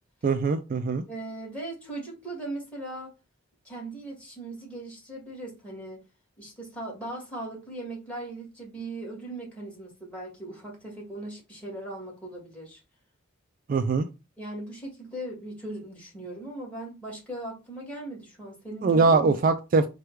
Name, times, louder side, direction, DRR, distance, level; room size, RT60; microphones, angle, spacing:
voice 1, 0.2-1.0 13.7-14.1 18.8-19.9, right 4 dB, 45° right, 0.3 m, -22 dB
voice 2, 1.1-3.1 3.6-6.0 6.4-12.8 14.4-19.4, right 2 dB, 5° left, 1.9 m, -38 dB
4.6 x 2.2 x 4.7 m
head